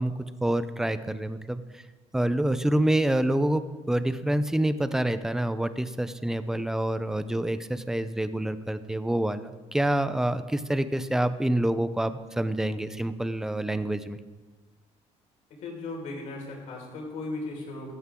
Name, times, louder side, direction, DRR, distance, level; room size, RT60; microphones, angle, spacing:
voice 1, 0.0-1.8 2.1-14.2, right 1 dB, 5° right, 12 dB, 0.7 m, -27 dB
voice 2, 15.5-17.9, left 2 dB, 70° left, -2 dB, 5.5 m, -37 dB
16.5 x 14.0 x 3.9 m, 1.3 s
cardioid pair, 125°, 13 cm